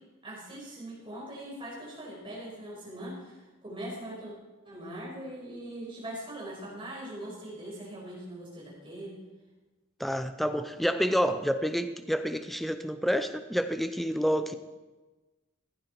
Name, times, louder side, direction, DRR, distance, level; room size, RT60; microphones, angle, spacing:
voice 1, 0.2-3.4 3.6-4.3 4.7-9.2, right 1 dB, 25° right, -5 dB, 5.3 m, -41 dB
voice 2, 10.0-14.6, equal, ahead, 9 dB, 0.6 m, -28 dB
15.5 x 10.5 x 4.6 m, 1.2 s
head